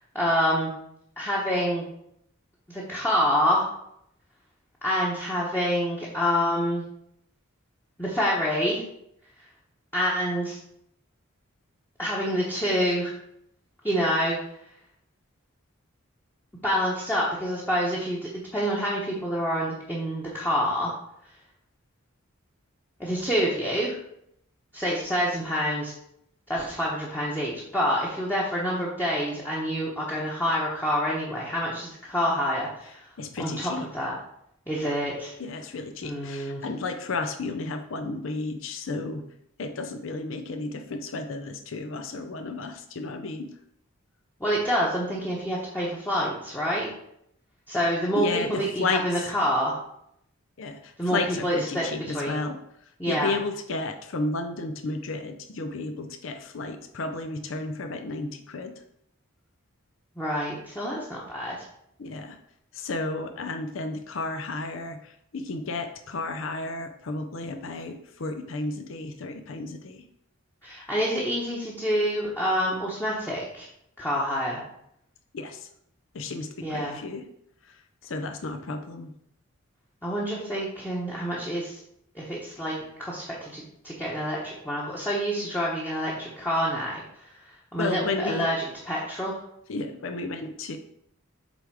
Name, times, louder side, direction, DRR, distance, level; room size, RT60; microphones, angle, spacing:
voice 1, 0.1-0.7 1.2-1.8 2.7-3.7 4.8-6.8 8.0-8.8 9.9-10.6 12.0-13.1 13.8-14.4 16.6-20.9 23.0-24.0 24.7-25.9 26.5-33.1 33.4-34.1 34.7-35.3 36.0-36.6 44.4-46.9 47.7-49.8 51.0-51.9 52.1-52.4 53.0-53.3 60.2-61.5 70.6-73.7 74.0-74.6 76.6-77.0 80.0-81.8 82.1-88.5 88.9-89.4, equal, 10° left, -5 dB, 1.0 m, -27 dB
voice 2, 33.2-33.9 35.4-39.2 39.6-43.6 47.9-49.3 50.6-58.7 62.0-62.4 62.7-70.1 75.3-75.7 76.1-77.2 77.6-79.1 87.8-88.5 89.7-90.8, left 3 dB, 70° left, 7 dB, 0.6 m, -33 dB
7.8 x 3.5 x 4.7 m, 0.75 s
head